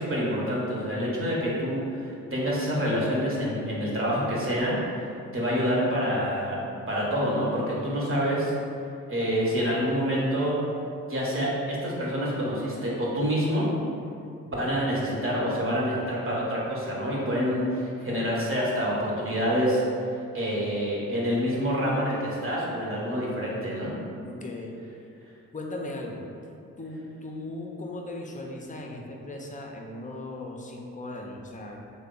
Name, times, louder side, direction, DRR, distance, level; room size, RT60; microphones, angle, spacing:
voice 1, 0.0-4.8 5.3-6.6 6.9-8.5 9.1-10.6 11.1-13.7 14.6-19.8 20.3-24.0, equal, 35° right, -5 dB, 0.9 m, -27 dB
voice 2, 24.2-24.8 25.5-26.2 26.8-31.8, left 2 dB, 20° left, 0 dB, 0.5 m, -37 dB
3.2 x 2.0 x 3.7 m, 2.5 s
supercardioid pair, 45°, 35 cm